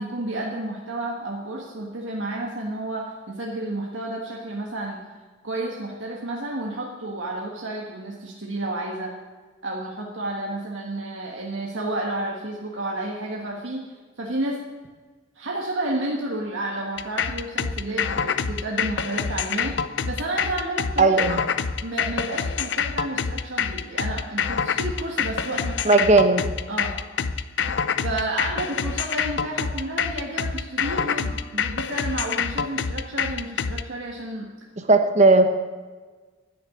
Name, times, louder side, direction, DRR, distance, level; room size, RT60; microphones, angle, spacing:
voice 1, 0.0-5.0 5.4-9.1 9.6-14.6 15.3-19.8 20.0-21.4 21.8-26.0 26.7-27.0 28.0-34.5, right 1 dB, 70° right, -1 dB, 1.5 m, -31 dB
sound 1, 17.0-33.8, left 6 dB, 60° left, 0.6 m, -26 dB
voice 2, 21.0-21.4 25.8-26.4 34.9-35.5, right 3 dB, 35° right, 7 dB, 1.0 m, -16 dB
10.0 x 9.8 x 9.9 m, 1.4 s
head